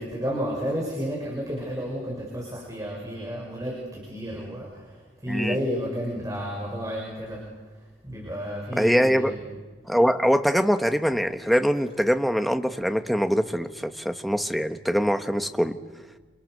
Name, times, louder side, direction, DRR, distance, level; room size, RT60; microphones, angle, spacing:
voice 1, 0.0-4.7 5.2-7.4 8.0-9.4, equal, 20° right, -3 dB, 6.9 m, -31 dB
voice 2, 5.3-5.6 8.7-9.3 9.9-15.7, equal, ahead, 7 dB, 1.4 m, -23 dB
29.5 x 28.5 x 6.8 m, 1.3 s
head